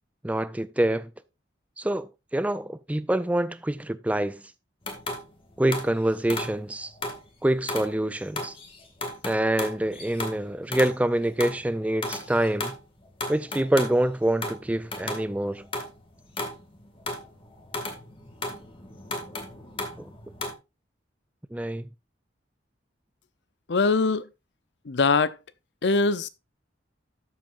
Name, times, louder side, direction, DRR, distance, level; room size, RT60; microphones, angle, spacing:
voice 1, 0.2-1.1 1.8-4.4 5.6-6.9 7.4-8.5 9.2-12.7 13.3-15.7 20.0-20.1 21.5-21.9, right 1 dB, 10° right, 0.4 m, -26 dB
sound 1, 4.8-7.3 7.7-20.5, left 2 dB, 30° left, 2.0 m, -36 dB
voice 2, 23.7-24.3 24.8-25.4 25.8-26.3, left 4 dB, 70° left, 0.7 m, -22 dB
12.5 x 7.5 x 2.5 m
head